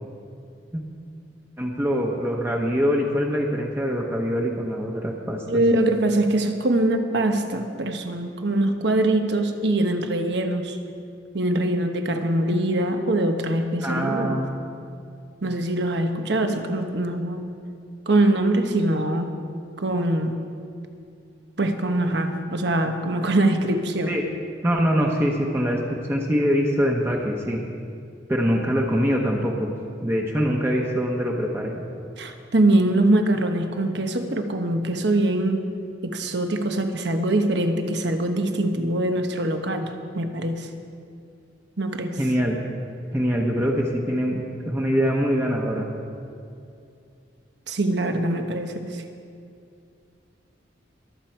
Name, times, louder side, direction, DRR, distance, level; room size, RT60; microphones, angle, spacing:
voice 1, 1.6-5.6 13.8-14.5 24.1-24.2 24.6-27.6 28.3-29.7 30.0-31.8 42.2-42.5 43.1-45.9, equal, 15° right, -1 dB, 1.0 m, -24 dB
voice 2, 5.5-10.8 11.3-14.4 15.4-17.4 18.1-19.3 19.8-20.3 21.6-24.2 32.2-35.6 36.0-40.7 41.8-42.2 47.7-49.0, right 1 dB, 65° right, 6 dB, 1.1 m, -23 dB
22.5 x 7.7 x 4.5 m, 2.5 s
head